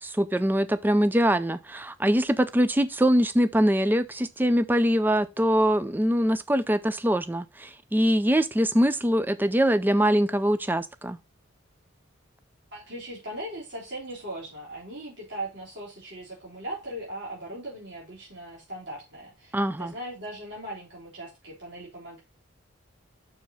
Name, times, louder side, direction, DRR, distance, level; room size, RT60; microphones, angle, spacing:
voice 1, 0.0-11.2 19.5-19.9, equal, 10° right, 0.4 m, -23 dB
voice 2, 12.7-22.2, right 1 dB, 55° right, 3.7 m, -39 dB
6.1 x 4.6 x 5.4 m
head